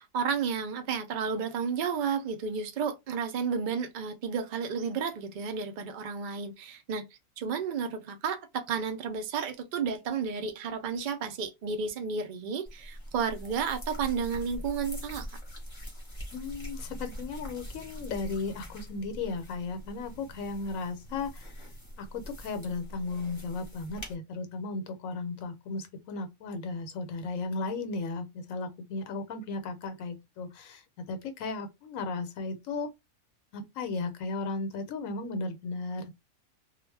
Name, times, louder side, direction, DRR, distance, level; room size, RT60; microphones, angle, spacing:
voice 1, 0.0-7.1 7.4-15.4, right 6 dB, 75° right, 0.4 m, -32 dB
sound 1, 12.7-24.2, equal, 25° left, 0.7 m, -43 dB
voice 2, 16.3-21.6 22.0-32.9 33.5-36.1, left 3 dB, 80° left, 1.0 m, -35 dB
2.3 x 2.1 x 3.2 m
omnidirectional pair, 1.4 m